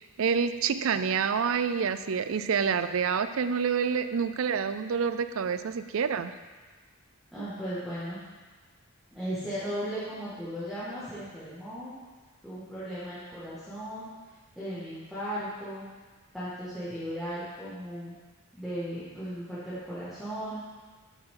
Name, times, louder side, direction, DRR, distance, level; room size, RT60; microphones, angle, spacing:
voice 1, 0.0-6.3, right 6 dB, 70° right, 11 dB, 0.4 m, -28 dB
voice 2, 7.3-8.2 9.1-11.9 12.4-14.1 14.6-15.9 16.3-18.2 18.5-20.6, equal, ahead, -14 dB, 2.1 m, -36 dB
8.8 x 8.1 x 3.9 m, 1.4 s
head